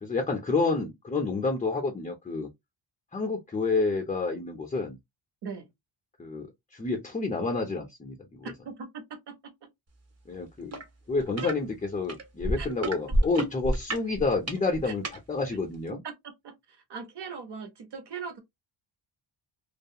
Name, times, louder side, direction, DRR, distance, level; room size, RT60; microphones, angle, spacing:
voice 1, 0.0-2.5 3.1-5.0 6.2-8.5 10.3-10.8 11.1-16.0, left 3 dB, 20° left, 0.3 m, -29 dB
voice 2, 8.4-9.5 11.4-11.5 12.6-12.7 14.8-14.9 16.0-16.1 16.4-18.4, right 5 dB, 55° right, 0.9 m, -39 dB
sound 1, 10.7-10.8 11.2-11.5 12.1-15.2 15.9-16.0, right 1 dB, 35° right, 0.6 m, -28 dB
2.4 x 2.3 x 2.7 m
wide cardioid pair, 150°, 48 cm